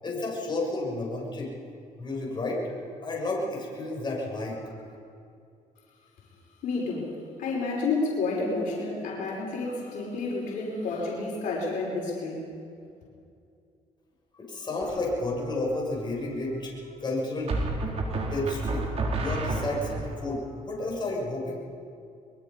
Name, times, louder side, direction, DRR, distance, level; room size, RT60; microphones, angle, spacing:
voice 1, 0.0-1.5 2.0-4.8 14.4-17.6 18.2-21.6, left 2 dB, 35° left, -3 dB, 6.9 m, -31 dB
voice 2, 6.6-12.5, left 3 dB, 75° left, -3 dB, 5.9 m, -30 dB
sound 1, 14.8-15.3 17.5-20.1, right 2 dB, 50° right, 4.1 m, -30 dB
23.0 x 23.0 x 5.5 m, 2.4 s
cardioid pair, 85°, 14 cm